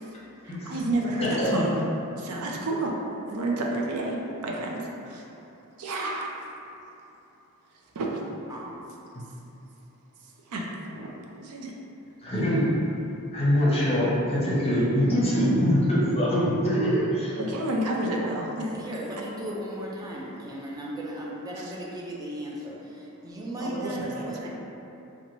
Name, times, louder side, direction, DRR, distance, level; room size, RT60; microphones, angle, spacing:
voice 1, 0.4-1.8 2.2-3.0 3.3-5.2 5.8-6.3 7.9-8.1 10.5-11.1 11.4-11.7 17.4-18.8 21.6-21.7 23.6-24.5, right 1 dB, 85° right, -1 dB, 0.5 m, -30 dB
voice 2, 1.2-1.5 12.2-12.7 13.3-17.4, equal, 25° left, -7 dB, 0.7 m, -23 dB
voice 3, 18.7-24.5, right 1 dB, 15° right, -4 dB, 0.4 m, -36 dB
3.8 x 2.2 x 3.1 m, 2.9 s
head